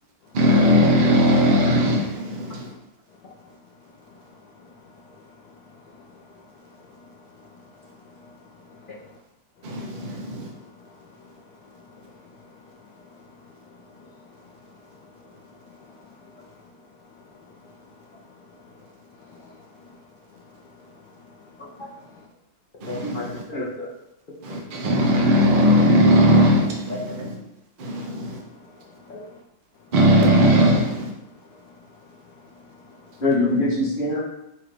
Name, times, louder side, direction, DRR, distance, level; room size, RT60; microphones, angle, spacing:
voice 1, 0.3-2.7 9.6-10.5 22.8-23.4 24.4-27.3 27.8-28.3 29.9-31.1, equal, 55° right, 0.5 m, -18 dB
voice 2, 2.4-2.8 3.1-9.2 9.6-22.3 22.9-23.3 24.6-25.1 27.1-27.2 27.8-29.4 29.8-29.9 31.2-33.2, left 3 dB, 75° left, 1.2 m, -51 dB
voice 3, 22.9-23.9 29.1-29.2 33.2-34.2, left 2 dB, 45° left, 0.7 m, -24 dB
4.3 x 2.5 x 4.6 m
omnidirectional pair, 2.0 m